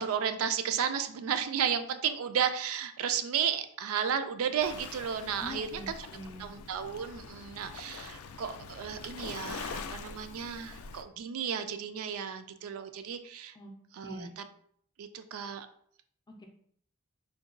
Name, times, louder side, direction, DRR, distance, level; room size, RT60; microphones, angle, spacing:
voice 1, 0.0-6.1 6.4-13.6 13.9-14.4 15.0-15.7, right 7 dB, 75° right, 9 dB, 0.3 m, -33 dB
Waves surf, 4.6-11.0, left 5 dB, 90° left, 0.4 m, -44 dB
voice 2, 5.4-6.5 13.6-13.7 14.0-14.3 16.3-16.5, left 1 dB, 20° left, 2 dB, 0.4 m, -44 dB
3.9 x 2.2 x 3.7 m, 0.63 s
head